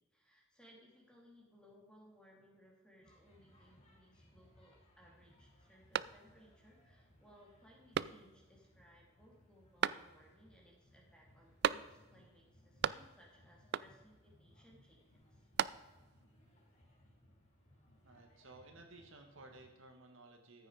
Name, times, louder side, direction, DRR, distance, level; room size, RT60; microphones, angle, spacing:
voice 1, 0.0-15.5, equal, 5° left, -2 dB, 2.8 m, -64 dB
sound 1, 3.0-19.8, left 1 dB, 35° left, 4.6 m, -67 dB
sound 2, 5.9-6.6 7.0-7.1 7.9-8.6 9.8-10.4 11.6-12.2 12.5-13.3 13.7-14.2 15.2-16.2, right 8 dB, 50° right, 0.3 m, -38 dB
voice 2, 18.0-20.7, right 2 dB, 65° right, 4 dB, 1.8 m, -57 dB
14.5 x 9.1 x 5.0 m, 1.2 s
head